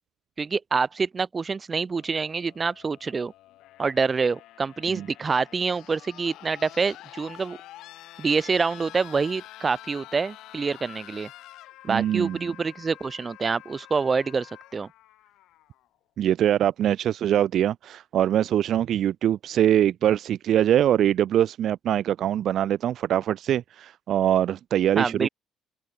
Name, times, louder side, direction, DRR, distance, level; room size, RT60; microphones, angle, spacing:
voice 1, 0.4-3.3 3.8-7.6 8.2-11.3 11.8-14.9 25.0-25.3, right 4 dB, 25° right, 1.3 m, -26 dB
sound 1, 1.9-15.9 17.1-17.2, left 15 dB, 80° left, 2.9 m, -48 dB
voice 2, 11.9-12.4 16.2-25.3, right 11 dB, 60° right, 0.3 m, -23 dB
open air
cardioid pair, 115°, 0 cm